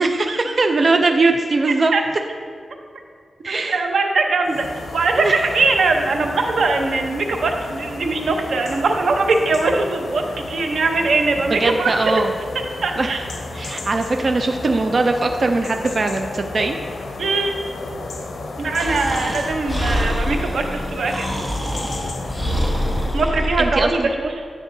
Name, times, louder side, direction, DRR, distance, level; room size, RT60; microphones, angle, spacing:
voice 1, 0.0-1.9 3.4-3.9 5.2-5.5 11.5-12.3 13.0-13.1 13.5-16.8 23.6-24.1, right 3 dB, 45° right, 5 dB, 0.4 m, -20 dB
voice 2, 3.5-4.6 4.9-10.2 10.5-12.2 12.8-13.2 17.2-17.5 18.6-21.3 23.1-24.4, right 3 dB, 85° right, 3 dB, 0.7 m, -21 dB
sound 1, 4.4-23.3, left 2 dB, 80° left, 0.7 m, -33 dB
Breathing, 18.8-23.9, equal, 5° left, 1.1 m, -25 dB
9.9 x 7.1 x 2.6 m, 2.1 s
wide cardioid pair, 125°, 0 cm